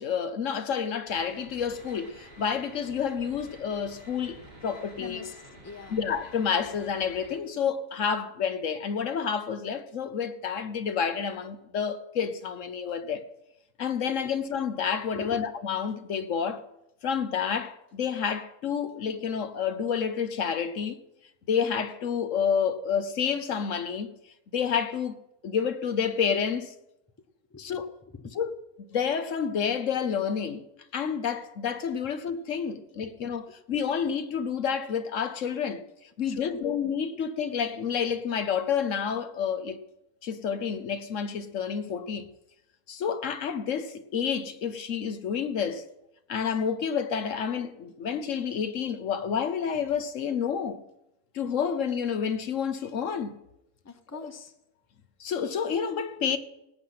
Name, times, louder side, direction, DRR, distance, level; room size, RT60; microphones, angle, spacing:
voice 1, 0.0-5.2 5.9-13.3 13.8-16.6 17.0-21.0 21.5-24.1 24.5-25.2 25.4-26.7 27.6-27.9 28.3-28.6 28.9-30.6 30.9-35.8 36.2-39.8 40.2-42.3 42.9-45.8 46.3-50.8 51.3-53.3 54.2-54.3 55.2-56.4, left 7 dB, 65° left, 1.2 m, -29 dB
sound 1, 1.1-7.4, equal, 30° right, 3.9 m, -50 dB
voice 2, 5.0-6.0 15.1-15.4 27.5-27.6 28.1-28.4 36.3-36.7 53.8-54.5, left 4 dB, 15° left, 0.6 m, -42 dB
18.0 x 8.1 x 5.7 m
omnidirectional pair, 1.5 m